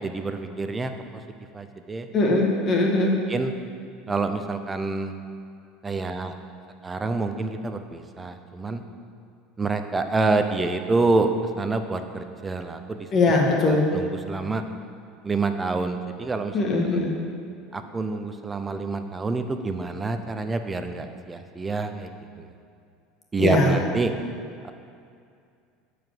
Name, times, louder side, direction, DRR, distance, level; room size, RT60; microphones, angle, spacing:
voice 1, 0.0-0.9 1.5-2.1 3.3-3.5 4.1-5.1 5.8-6.3 6.8-8.8 9.6-11.3 11.6-13.0 13.7-14.6 15.2-16.5 17.7-22.1 23.3-24.1, right 3 dB, 15° right, 7 dB, 0.6 m, -27 dB
voice 2, 2.1-3.2 13.1-13.9 16.5-17.1 23.4-23.7, left 2 dB, 35° left, 0 dB, 1.7 m, -21 dB
10.0 x 4.9 x 7.8 m, 2.3 s
supercardioid pair, 135°, 0 cm